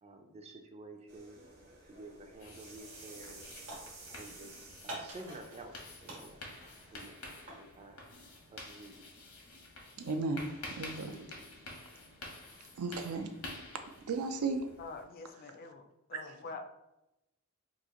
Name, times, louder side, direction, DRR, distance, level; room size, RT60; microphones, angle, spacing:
voice 1, 0.0-3.5 4.2-5.8 6.0-6.4 6.9-8.0 8.5-9.1, right 2 dB, 30° right, 4 dB, 0.4 m, -51 dB
sound 1, 1.1-7.1, right 3 dB, 50° right, 0.8 m, -54 dB
sound 2, 2.4-15.0, left 2 dB, 85° left, 1.0 m, -50 dB
sound 3, 2.5-2.8 3.1-4.4 4.9-5.8 6.1-7.7, right 1 dB, 70° right, 1.1 m, -47 dB
voice 2, 10.0-10.5 10.8-11.2 12.8-13.3 14.0-14.7 16.1-16.2, right 3 dB, 85° right, 6 dB, 0.4 m, -34 dB
voice 3, 14.8-15.8 16.1-16.6, left 4 dB, 45° left, 6 dB, 0.4 m, -45 dB
3.0 x 2.4 x 3.7 m, 0.92 s
head